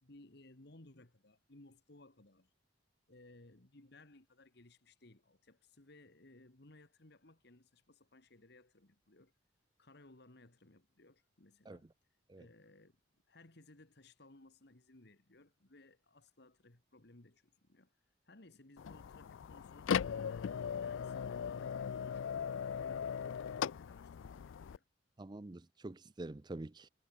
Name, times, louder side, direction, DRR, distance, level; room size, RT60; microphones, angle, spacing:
voice 1, 0.0-2.5 3.1-9.3 9.8-11.9 12.4-13.0 13.3-18.0 18.3-24.8, left 2 dB, 60° left, 1.9 m, -61 dB
sound 1, 18.8-24.8, left 7 dB, 90° left, 0.4 m, -38 dB
voice 2, 25.2-26.9, right 2 dB, 20° right, 0.5 m, -46 dB
head